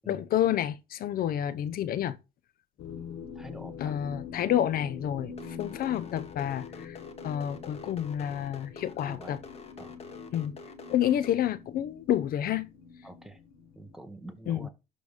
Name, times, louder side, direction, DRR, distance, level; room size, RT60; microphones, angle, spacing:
voice 1, 0.1-2.2 3.8-7.0 7.2-9.4 10.3-10.6 10.9-12.7 14.5-14.7, left 11 dB, 60° left, 0.6 m, -29 dB
sound 1, 2.8-14.0, left 6 dB, 85° left, 1.1 m, -45 dB
voice 2, 3.3-3.9 9.1-9.4 9.8-9.9 13.0-13.4 13.7-14.7, right 1 dB, ahead, 1.5 m, -46 dB
sound 2, 5.3-11.3, left 4 dB, 35° left, 1.7 m, -47 dB
11.5 x 4.0 x 3.6 m
cardioid pair, 110°, 17 cm